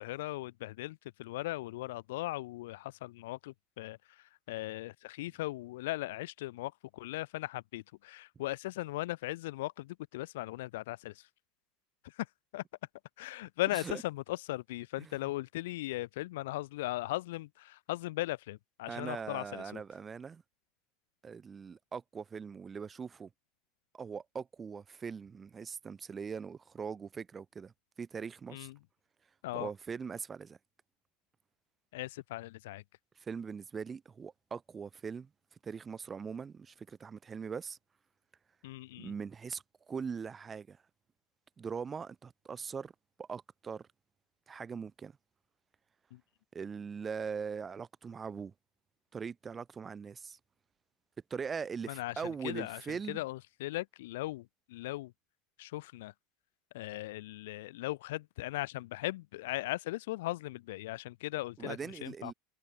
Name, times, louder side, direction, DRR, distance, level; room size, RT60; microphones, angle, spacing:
voice 1, 0.0-4.0 4.5-11.1 12.5-12.6 13.2-19.8 28.5-28.7 29.4-29.7 31.9-32.8 38.6-39.1 51.9-52.1 52.4-55.1 55.6-56.1 56.7-62.3, left 18 dB, 85° left, 3.0 m, -38 dB
voice 2, 13.7-14.0 15.0-15.2 18.9-20.4 21.2-23.3 23.9-27.7 28.0-28.7 29.5-30.6 33.2-35.3 35.6-37.8 39.0-40.8 41.6-42.9 43.2-43.9 44.5-45.1 46.5-48.5 49.1-50.4 51.3-53.2 61.6-62.3, right 6 dB, 20° right, 4.5 m, -41 dB
supercardioid pair, 140°, 0 cm